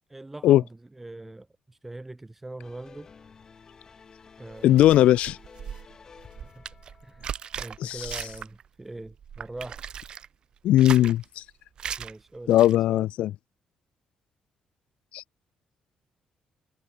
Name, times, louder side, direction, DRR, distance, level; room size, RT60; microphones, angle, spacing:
voice 1, 0.1-3.1 4.4-4.9 6.6-6.7 7.0-7.3 7.6-9.8 12.0-13.1, right 2 dB, 10° right, 2.2 m, -42 dB
sound 1, 2.6-8.1, left 5 dB, 30° left, 5.6 m, -52 dB
sound 2, 4.5-8.7 9.0-10.3 10.7-11.2 11.8-12.1 12.5-12.8, right 8 dB, 45° right, 0.9 m, -38 dB
voice 2, 4.6-5.4 7.8-8.0 10.6-11.4 12.5-13.3 15.1-15.2, left 13 dB, 80° left, 0.4 m, -19 dB
cardioid pair, 150°, 2 cm